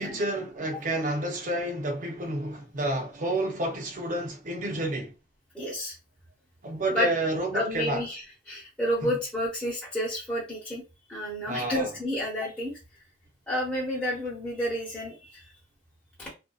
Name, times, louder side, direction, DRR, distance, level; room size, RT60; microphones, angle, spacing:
voice 1, 0.0-5.1 6.6-8.0 9.0-9.1 11.5-11.9, right 1 dB, 45° right, 0.6 m, -30 dB
voice 2, 5.5-6.0 6.9-7.1 7.5-10.8 11.1-12.7 13.5-15.4 16.2-16.3, equal, 5° left, 0.7 m, -30 dB
2.6 x 2.2 x 2.3 m
head